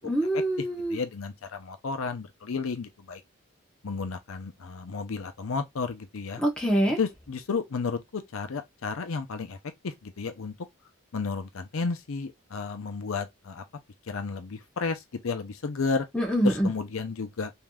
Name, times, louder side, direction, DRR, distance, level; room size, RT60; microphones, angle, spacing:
voice 1, 0.1-1.0 6.4-7.0 16.1-16.7, right 1 dB, 5° left, 0.9 m, -25 dB
voice 2, 0.6-3.2 3.8-6.4 7.0-9.6 9.8-10.5 11.1-13.6 14.1-16.1 16.4-17.5, left 4 dB, 75° left, 0.6 m, -32 dB
3.4 x 2.7 x 2.3 m
head